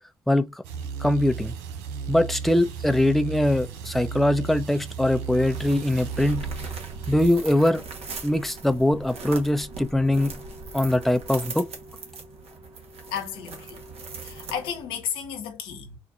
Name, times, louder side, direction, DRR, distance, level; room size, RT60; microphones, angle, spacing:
voice 1, 0.3-0.6 1.0-1.5 2.1-6.5 7.1-7.8 8.2-10.3 10.7-11.7, left 1 dB, ahead, 0.6 m, -22 dB
sound 1, 0.6-7.3, right 6 dB, 85° right, 0.6 m, -34 dB
sound 2, 5.1-15.0, right 4 dB, 60° right, 1.1 m, -39 dB
voice 2, 13.1-13.8 14.2-16.0, left 8 dB, 90° left, 0.8 m, -33 dB
4.1 x 2.5 x 2.4 m
hypercardioid pair, 45°, 12 cm